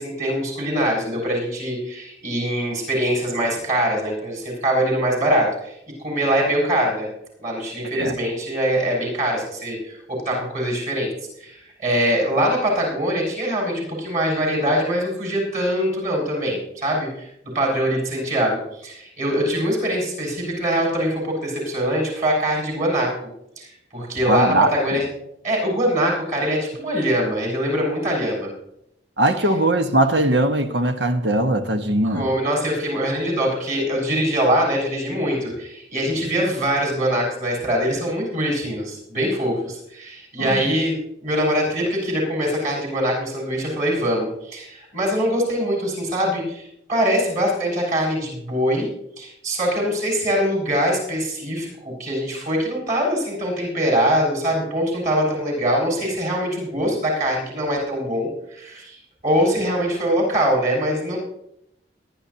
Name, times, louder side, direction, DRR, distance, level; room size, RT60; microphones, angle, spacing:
voice 1, 0.0-5.7 6.0-7.1 7.4-11.1 11.4-17.3 17.5-23.1 23.6-25.1 25.4-28.5 32.0-41.0 41.2-48.9 49.2-59.0 59.2-61.2, equal, 45° right, 7.1 m, -23 dB
voice 2, 24.2-25.0 29.2-32.3 40.4-40.7, right 1 dB, 90° right, 1.4 m, -20 dB
22.5 x 11.5 x 2.9 m
head